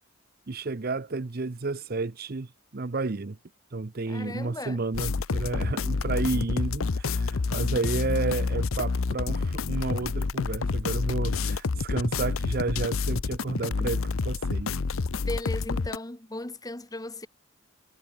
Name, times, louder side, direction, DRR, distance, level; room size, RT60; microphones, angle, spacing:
voice 1, 0.5-3.4 3.7-14.8, right 3 dB, 45° right, 0.7 m, -31 dB
voice 2, 4.1-4.8 15.3-17.3, left 2 dB, 15° left, 1.1 m, -36 dB
sound 1, 4.9-16.0, left 4 dB, 75° left, 0.7 m, -28 dB
head